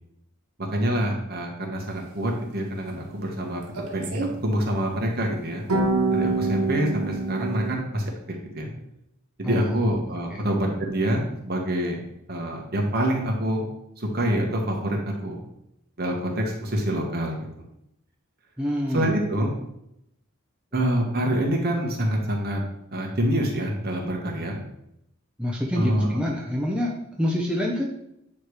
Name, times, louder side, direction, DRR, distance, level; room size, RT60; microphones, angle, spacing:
voice 1, 0.6-3.6 3.9-5.7 6.1-8.0 8.5-8.7 9.4-12.0 12.3-13.7 14.0-15.4 16.0-17.4 18.9-19.5 20.7-22.6 22.9-24.6 25.7-26.2, right 1 dB, 45° right, 0 dB, 1.4 m, -26 dB
sound 1, 3.8-4.3 5.7-7.7, right 3 dB, 90° right, 1.1 m, -25 dB
voice 2, 9.4-9.9 10.3-10.5 18.6-19.1 25.4-27.9, left 1 dB, 5° right, -2 dB, 0.6 m, -27 dB
9.1 x 3.2 x 4.8 m, 0.81 s
head